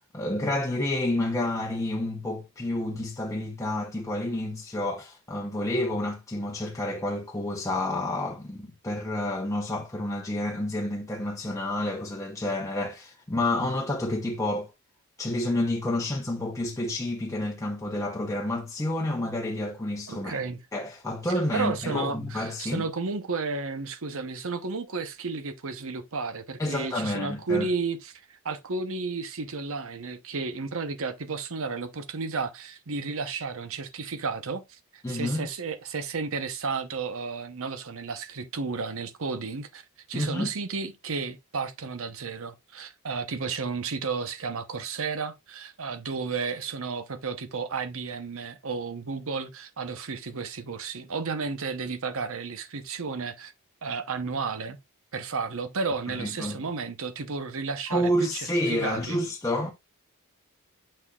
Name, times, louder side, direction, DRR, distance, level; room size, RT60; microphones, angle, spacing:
voice 1, 0.1-14.7 15.2-20.4 20.7-22.9 26.6-27.7 35.0-35.5 40.1-40.5 56.1-56.6 57.9-59.7, left 1 dB, 15° left, 0.8 m, -29 dB
voice 2, 20.1-20.6 21.3-39.8 40.1-53.5 53.8-54.8 55.1-59.2, right 4 dB, 65° right, 0.9 m, -32 dB
6.5 x 6.2 x 2.4 m
head